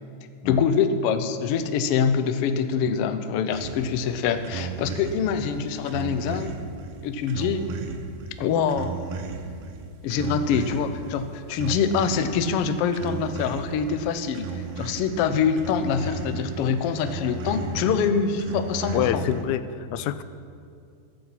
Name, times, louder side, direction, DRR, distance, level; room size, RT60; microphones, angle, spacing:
voice 1, 0.4-6.6 7.0-7.7 8.4-8.9 10.0-19.2, left 6 dB, 70° left, 9 dB, 1.5 m, -25 dB
sound 1, 3.5-19.4, right 5 dB, 65° right, 1.9 m, -35 dB
voice 2, 18.9-20.2, left 11 dB, 85° left, 13 dB, 2.0 m, -26 dB
14.5 x 14.0 x 5.9 m, 2.4 s
omnidirectional pair, 3.4 m